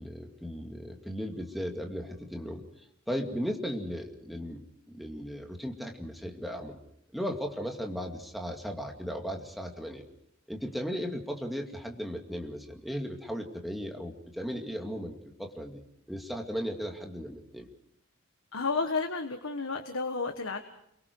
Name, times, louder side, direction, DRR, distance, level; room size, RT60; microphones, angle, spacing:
voice 1, 0.0-2.6 3.1-4.6 4.9-6.8 7.1-10.0 10.5-15.8 16.1-17.7, equal, ahead, 2 dB, 2.3 m, -36 dB
voice 2, 18.5-20.6, left 4 dB, 75° left, 5 dB, 1.5 m, -31 dB
29.5 x 23.0 x 4.8 m, 0.76 s
head